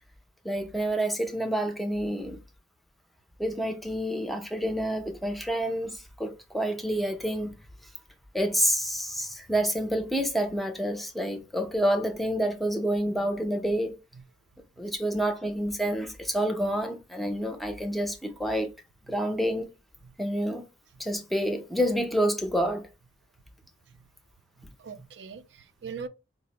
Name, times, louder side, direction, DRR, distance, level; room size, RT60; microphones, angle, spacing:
voice 1, 0.4-2.4 3.4-7.6 8.3-14.0 14.8-18.7 19.1-19.7 20.2-20.7 21.0-22.9, equal, ahead, 0.5 m, -28 dB
voice 2, 24.6-26.1, right 5 dB, 70° right, 0.4 m, -42 dB
4.9 x 2.0 x 2.8 m
head